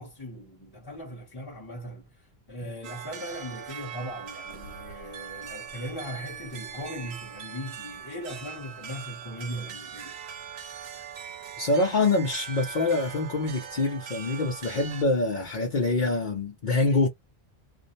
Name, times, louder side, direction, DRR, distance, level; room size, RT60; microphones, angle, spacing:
voice 1, 0.0-10.2, equal, 25° left, 0.8 m, -39 dB
sound 1, 2.8-15.0, right 8 dB, 90° right, 0.9 m, -41 dB
voice 2, 11.6-17.1, left 2 dB, 55° left, 0.8 m, -25 dB
2.4 x 2.0 x 2.6 m
omnidirectional pair, 1.1 m